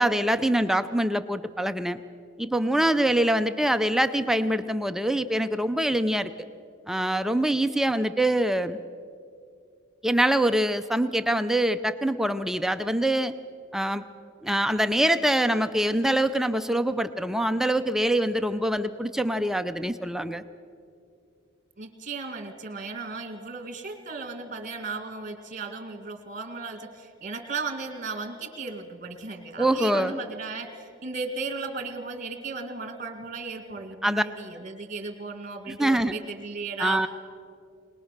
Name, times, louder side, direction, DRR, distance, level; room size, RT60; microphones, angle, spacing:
voice 1, 0.0-2.0 2.4-6.3 6.9-8.8 10.0-13.3 13.7-14.0 14.4-20.4 29.6-30.2 34.0-34.2 35.7-36.1 36.8-37.1, right 1 dB, ahead, 10 dB, 0.4 m, -24 dB
voice 2, 21.8-37.0, right 4 dB, 40° right, 6 dB, 2.1 m, -36 dB
21.5 x 20.0 x 6.6 m, 2.4 s
head